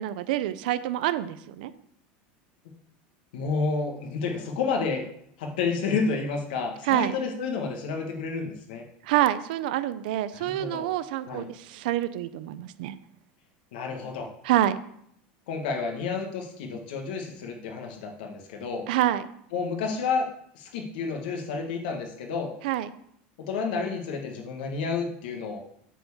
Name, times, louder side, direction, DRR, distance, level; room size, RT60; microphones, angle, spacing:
voice 1, 0.0-1.7 6.8-7.1 9.0-12.9 14.4-14.8 18.9-19.3 22.6-22.9, right 13 dB, 70° right, 13 dB, 0.6 m, -27 dB
voice 2, 3.3-5.0 5.4-8.8 10.3-10.9 11.3-11.4 13.7-14.3 15.5-18.9 19.5-20.3 20.5-22.5 23.4-25.6, left 4 dB, 80° left, 2 dB, 1.6 m, -30 dB
9.0 x 4.5 x 7.2 m, 0.70 s
supercardioid pair, 170°, 5 cm